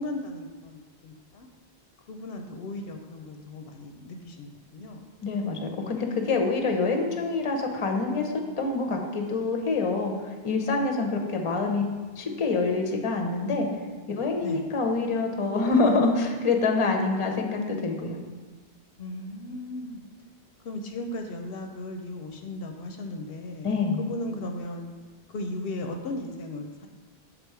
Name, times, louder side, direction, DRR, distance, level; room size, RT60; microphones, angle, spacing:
voice 1, 0.0-1.5 2.1-5.0 14.4-14.6 19.0-20.1 20.6-24.9 25.3-26.9, left 2 dB, 70° left, 4 dB, 0.8 m, -36 dB
voice 2, 5.2-11.8 12.1-13.7 14.2-18.2 23.6-24.0, left 3 dB, 35° left, 3 dB, 0.7 m, -26 dB
6.8 x 3.7 x 4.7 m, 1.3 s
omnidirectional pair, 1.1 m